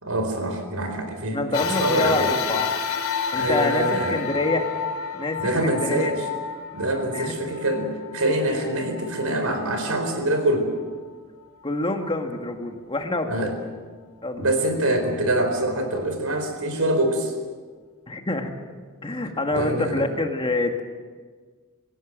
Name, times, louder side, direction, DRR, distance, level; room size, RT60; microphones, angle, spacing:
voice 1, 0.0-1.4 1.8-2.4 3.3-4.2 5.4-6.2 6.7-10.7 13.3-13.5 14.4-17.3 19.5-20.0, right 1 dB, 85° right, 6 dB, 4.4 m, -25 dB
voice 2, 1.3-2.7 3.3-4.7 5.1-6.1 7.1-7.3 8.6-8.7 11.6-13.5 14.2-14.5 18.1-18.5 19.0-20.8, left 2 dB, 25° left, 4 dB, 2.0 m, -26 dB
sound 1, 1.5-10.1 10.8-10.9 12.0-12.1, left 7 dB, 75° left, 3.2 m, -30 dB
28.0 x 16.5 x 7.6 m, 1.5 s
head